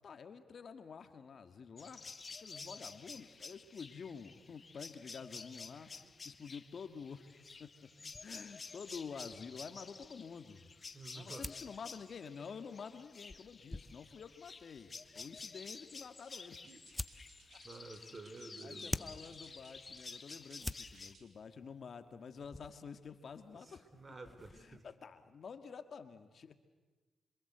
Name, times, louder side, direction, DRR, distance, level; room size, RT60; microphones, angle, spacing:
voice 1, 0.0-2.1 2.4-5.9 6.2-7.3 7.6-7.9 8.2-10.7 11.1-16.6 18.6-23.9 24.5-26.5, left 6 dB, 60° left, 8 dB, 1.8 m, -49 dB
sound 1, 1.8-21.1, left 4 dB, 40° left, 1.2 m, -52 dB
sound 2, 8.1-24.9, left 2 dB, 15° left, 0.8 m, -51 dB
voice 2, 10.9-11.5 15.2-15.3 16.6-16.8 17.6-19.2 23.5-24.9, right 3 dB, 40° right, 10 dB, 3.3 m, -52 dB
sound 3, 16.2-21.4, right 4 dB, 65° right, 5.2 m, -64 dB
27.0 x 25.5 x 8.1 m, 1.3 s
cardioid pair, 65°, 0 cm